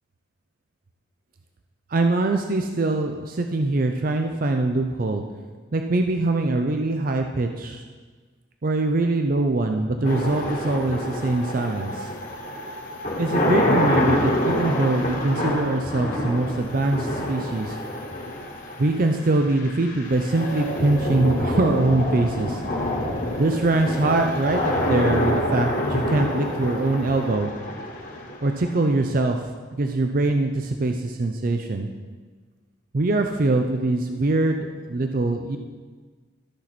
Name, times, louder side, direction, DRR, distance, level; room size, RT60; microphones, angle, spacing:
voice 1, 1.9-5.2 5.7-7.8 8.6-12.1 13.2-17.8 18.8-22.6 23.4-27.5 28.4-31.9 32.9-35.6, right 2 dB, 45° right, 5 dB, 0.5 m, -23 dB
sound 1, 10.0-29.1, left 1 dB, 45° left, 1.7 m, -27 dB
13.0 x 5.9 x 4.2 m, 1.4 s
head